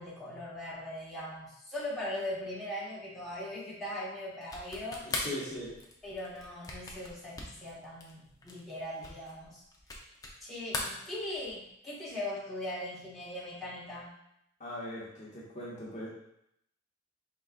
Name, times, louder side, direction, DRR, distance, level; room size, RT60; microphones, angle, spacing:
voice 1, 0.0-5.0 6.0-9.6 10.4-14.1, left 1 dB, ahead, -10 dB, 1.2 m, -40 dB
sound 1, 4.4-10.4 10.7-11.7, left 2 dB, 20° left, 0.6 m, -40 dB
voice 2, 5.0-5.7 14.6-16.1, left 1 dB, 35° left, -6 dB, 1.1 m, -40 dB
4.7 x 4.0 x 2.5 m, 0.77 s
head